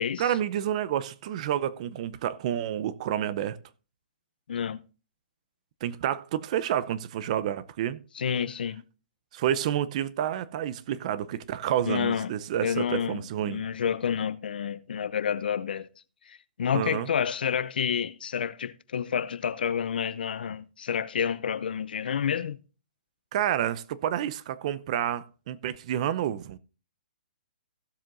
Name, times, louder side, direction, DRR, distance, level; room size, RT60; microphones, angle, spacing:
voice 1, 0.2-3.6 5.8-8.0 9.3-13.6 16.7-17.1 23.3-26.6, right 10 dB, 45° right, 0.7 m, -29 dB
voice 2, 4.5-4.8 8.1-8.8 11.8-12.3 12.6-13.2 13.4-15.9 16.3-22.6, left 7 dB, 75° left, 0.7 m, -29 dB
16.0 x 7.6 x 2.6 m
hypercardioid pair, 145°, 5 cm